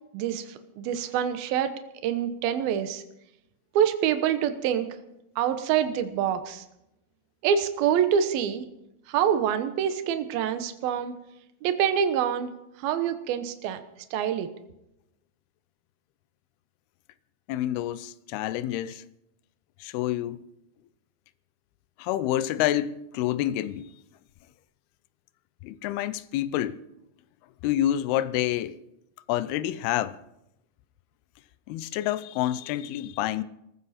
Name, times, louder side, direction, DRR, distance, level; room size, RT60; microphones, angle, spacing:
voice 1, 0.1-0.5 0.8-1.7 2.0-3.0 3.7-4.9 5.4-6.6 7.4-8.6 9.1-11.1 11.6-12.5 12.8-13.8 14.1-14.5, right 9 dB, 75° right, 2.9 m, -26 dB
voice 2, 17.5-19.0 19.8-20.4 22.0-23.9 25.6-26.8 27.6-28.8 29.3-30.2 31.7-33.4, left 13 dB, 90° left, 2.7 m, -28 dB
21.5 x 14.5 x 4.3 m
omnidirectional pair, 4.4 m